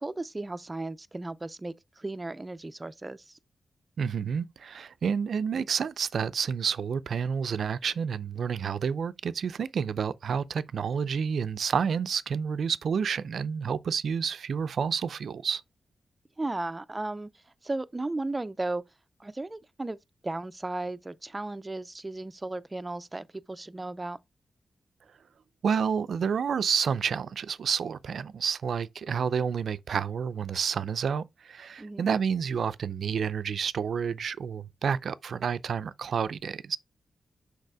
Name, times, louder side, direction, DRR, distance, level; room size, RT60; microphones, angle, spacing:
voice 1, 0.0-3.4 16.4-17.3 17.6-18.8 19.2-20.0 20.2-24.2 31.8-32.1, right 2 dB, 25° right, 0.5 m, -35 dB
voice 2, 4.0-15.6 25.6-36.8, right 6 dB, 75° right, 0.5 m, -29 dB
6.6 x 4.8 x 3.5 m
cardioid pair, 80°, 0 cm